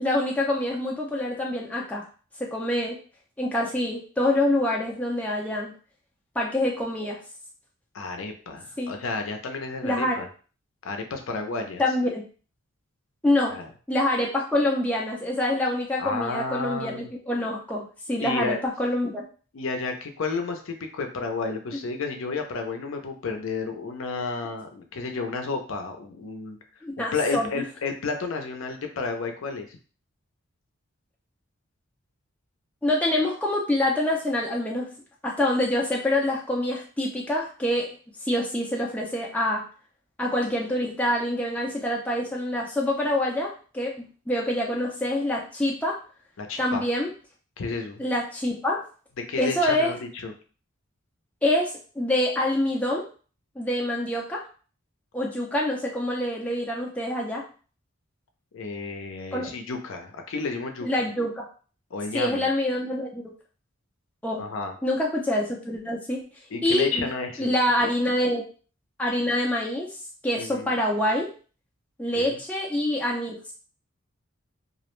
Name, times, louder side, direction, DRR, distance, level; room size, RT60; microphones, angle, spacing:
voice 1, 0.0-2.0 2.4-3.0 3.4-5.7 6.4-7.2 8.8-8.9 9.8-10.2 11.8-12.2 13.2-13.6 13.9-19.2 26.8-27.5 32.8-34.9 35.2-37.9 38.2-39.6 40.2-46.0 46.6-47.1 48.0-48.8 49.4-49.9 51.4-53.0 53.6-54.4 55.1-57.5 59.3-59.5 60.8-61.4 62.1-63.3 64.2-64.4 64.8-66.2 66.6-67.1 67.4-68.5 69.0-69.9 70.2-71.3 72.0-73.4, left 1 dB, 5° left, -3 dB, 0.3 m, -26 dB
voice 2, 7.9-10.3 10.8-11.8 13.5-13.7 16.0-17.1 18.2-18.6 19.5-26.6 27.0-29.8 46.4-46.8 47.6-48.0 49.3-50.3 58.5-60.9 61.9-62.5 64.4-64.8 66.5-67.5 67.8-67.9 70.4-70.7 72.1-72.4, left 4 dB, 70° left, 4 dB, 0.5 m, -31 dB
2.4 x 2.0 x 3.0 m, 0.39 s
head